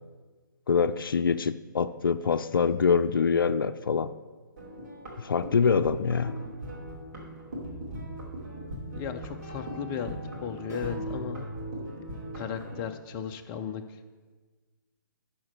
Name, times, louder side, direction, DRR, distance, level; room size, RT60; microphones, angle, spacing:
voice 1, 0.7-4.1 5.2-6.3, left 5 dB, 75° left, 12 dB, 0.4 m, -25 dB
sound 1, 4.6-12.9, right 1 dB, 50° right, 3.1 m, -39 dB
voice 2, 8.9-11.5 12.3-14.0, left 8 dB, 20° left, 6 dB, 0.5 m, -36 dB
11.5 x 4.5 x 5.9 m, 1.4 s
figure-of-eight pair, 140°, 12 cm